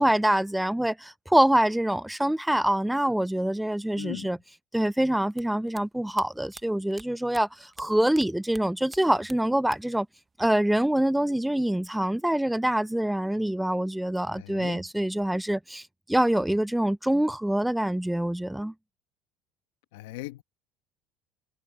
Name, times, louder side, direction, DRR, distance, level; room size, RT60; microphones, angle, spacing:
voice 1, 0.0-4.4 4.7-10.1 10.4-15.8 16.1-18.7, right 1 dB, 5° right, 0.5 m, -25 dB
voice 2, 3.9-4.3 14.4-14.8 19.9-20.4, left 20 dB, 85° left, 1.3 m, -39 dB
sound 1, 5.3-8.3 8.5-10.0 10.3-11.1, right 4 dB, 25° right, 1.2 m, -48 dB
hypercardioid pair, 80°, 0 cm